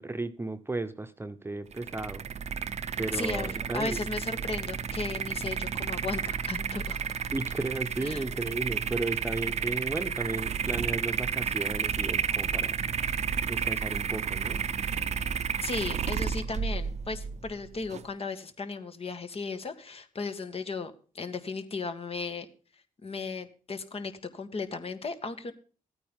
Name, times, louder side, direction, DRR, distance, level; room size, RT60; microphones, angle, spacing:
voice 1, 0.0-2.3 3.0-4.0 7.3-12.8 13.5-14.6, right 2 dB, 15° right, 1.0 m, -34 dB
sound 1, 1.7-18.1, right 7 dB, 55° right, 0.8 m, -32 dB
voice 2, 3.1-7.0 8.0-8.3 15.6-22.5 23.0-25.5, left 4 dB, 45° left, 1.8 m, -36 dB
14.0 x 9.2 x 3.6 m
cardioid pair, 75°, 13 cm